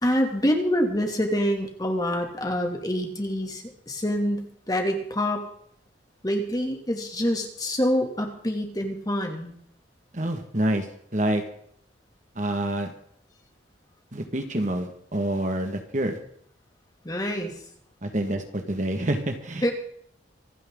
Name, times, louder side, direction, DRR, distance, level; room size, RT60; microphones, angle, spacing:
voice 1, 0.0-5.5 6.2-9.5 17.0-17.5 19.6-19.7, equal, 20° left, 3 dB, 2.7 m, -26 dB
voice 2, 10.1-10.9 11.1-11.4 12.4-12.9 14.1-16.2 18.0-19.7, right 1 dB, 40° right, 5 dB, 1.9 m, -27 dB
26.5 x 10.0 x 3.9 m, 0.67 s
head